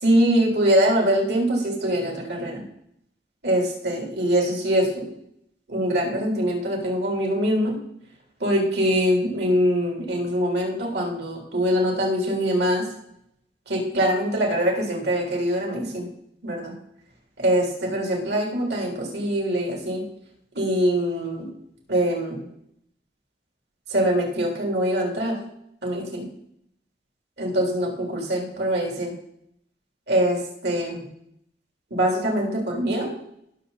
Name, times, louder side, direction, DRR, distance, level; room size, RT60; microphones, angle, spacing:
voice 1, 0.0-2.6 3.4-5.1 5.7-7.8 8.4-12.9 13.7-16.1 16.4-16.7 17.4-20.0 20.5-21.5 21.9-22.5 23.9-25.4 25.8-26.3 27.4-29.1 30.1-31.1 31.9-33.1, equal, 70° right, 0 dB, 3.7 m, -23 dB
18.5 x 7.2 x 4.2 m, 0.74 s
head